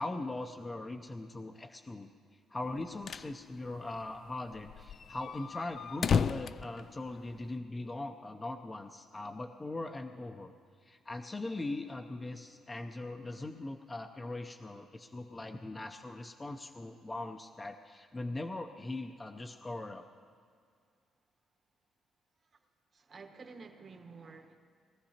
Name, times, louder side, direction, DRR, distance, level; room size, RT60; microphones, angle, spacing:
voice 1, 0.0-2.1 2.5-10.5 10.8-20.0, left 2 dB, 25° left, 4 dB, 0.6 m, -40 dB
sound 1, 2.7-3.3 3.7-3.8 4.0-4.1 4.5-7.5, left 6 dB, 55° left, 0.3 m, -33 dB
voice 2, 22.9-24.6, right 4 dB, 45° right, 4 dB, 1.3 m, -50 dB
21.5 x 14.0 x 2.9 m, 2.1 s
cardioid pair, 90°, 0 cm